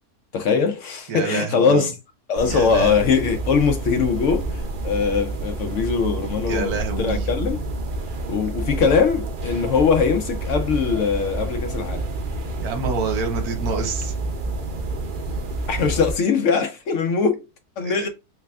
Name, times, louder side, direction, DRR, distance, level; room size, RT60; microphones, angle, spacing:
voice 1, 0.3-1.9 2.3-7.6 8.3-12.0 15.7-17.4 17.8-18.1, left 5 dB, 70° left, 0.7 m, -21 dB
voice 2, 1.1-1.9 2.4-3.0 6.5-7.3 12.6-14.1 17.8-18.1, right 5 dB, 70° right, 1.2 m, -27 dB
sound 1, 2.3-16.1, right 2 dB, 85° right, 0.4 m, -29 dB
3.3 x 3.2 x 2.3 m
omnidirectional pair, 1.7 m